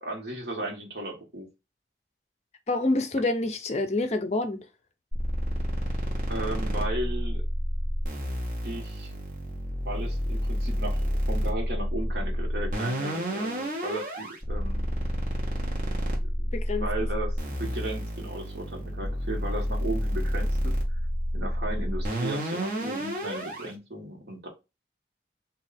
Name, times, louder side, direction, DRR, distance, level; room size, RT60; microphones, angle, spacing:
voice 1, 0.0-1.5 6.3-7.4 8.6-9.1 9.8-14.9 16.4-16.5 16.8-20.7 21.3-24.5, right 1 dB, 75° right, 1.4 m, -35 dB
voice 2, 2.7-4.7 16.5-17.1, left 2 dB, 40° left, 0.4 m, -27 dB
sound 1, 5.1-23.7, equal, 45° right, 1.1 m, -29 dB
3.2 x 2.7 x 4.0 m
head